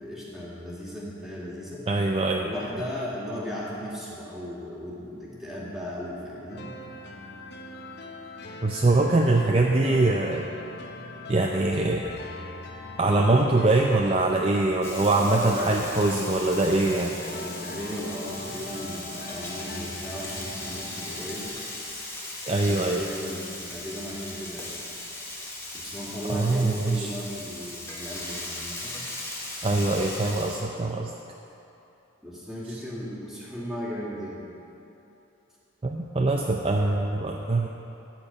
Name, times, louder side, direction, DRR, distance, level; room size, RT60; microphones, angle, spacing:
voice 1, 0.0-1.8 2.4-6.7 15.2-15.8 17.3-21.5 22.6-24.7 25.7-29.0 32.2-34.4, equal, ahead, -6 dB, 2.0 m, -36 dB
voice 2, 1.9-2.5 8.6-10.5 11.3-12.2 13.0-17.2 22.5-23.0 26.3-27.1 29.6-31.1 32.7-32.8 35.8-37.7, right 2 dB, 30° right, 0 dB, 0.5 m, -23 dB
sound 1, 6.5-21.5, left 2 dB, 55° left, 0.7 m, -41 dB
Frying (food), 14.8-30.6, left 1 dB, 15° left, 1.3 m, -38 dB
13.5 x 4.6 x 8.6 m, 2.9 s
head